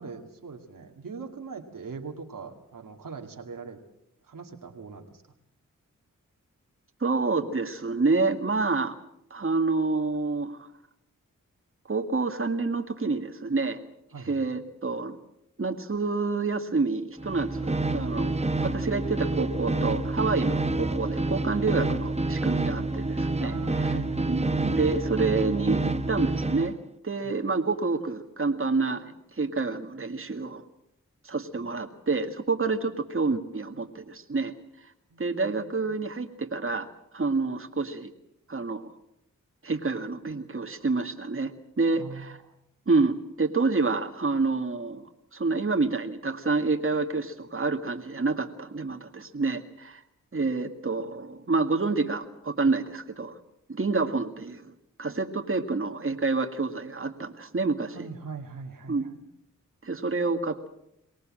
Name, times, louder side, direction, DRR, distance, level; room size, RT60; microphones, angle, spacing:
voice 1, 0.0-3.8 4.2-5.2 14.1-14.4 23.4-24.7 27.2-27.3 35.1-35.9 42.0-42.5 57.9-59.2, right 4 dB, 80° right, 3 dB, 2.4 m, -41 dB
voice 2, 7.0-9.0 9.3-10.7 11.9-13.8 14.2-15.2 15.6-23.9 24.2-26.8 27.0-30.6 31.2-34.5 35.2-36.9 37.1-38.1 38.5-38.9 39.6-42.4 42.9-45.0 45.3-50.0 50.3-53.4 53.7-54.7 55.0-58.1 58.9-59.1 59.8-60.7, right 3 dB, 40° right, 5 dB, 2.0 m, -28 dB
sound 1, 17.2-26.7, right 2 dB, 20° right, 1.2 m, -28 dB
23.5 x 18.5 x 7.6 m, 0.79 s
cardioid pair, 45°, 32 cm